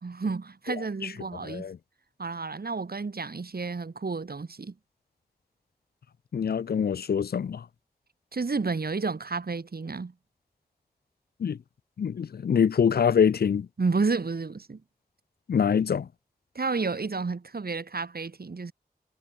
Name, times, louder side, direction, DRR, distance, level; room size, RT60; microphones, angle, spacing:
voice 1, 0.0-1.7 2.2-4.7 8.3-10.1 13.8-14.8 16.5-18.7, right 4 dB, 80° right, 2.7 m, -31 dB
voice 2, 6.3-7.6 11.4-11.6 12.0-13.7 15.5-16.1, left 7 dB, 90° left, 0.4 m, -24 dB
wide cardioid pair, 50°, 16 cm